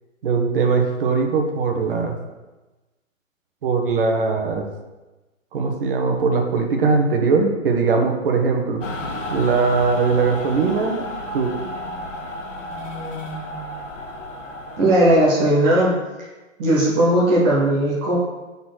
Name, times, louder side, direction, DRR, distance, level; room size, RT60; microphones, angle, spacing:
voice 1, 0.2-2.1 3.6-4.7 5.5-8.8 9.3-11.0 11.3-11.5, right 4 dB, 45° right, 3 dB, 1.2 m, -20 dB
Mechanical fan, 8.8-15.2, left 1 dB, 70° left, 1.4 m, -32 dB
voice 2, 14.8-15.9 16.6-18.2, right 1 dB, 10° right, -7 dB, 0.5 m, -17 dB
6.4 x 4.1 x 6.1 m, 1.1 s
hypercardioid pair, 150°, 39 cm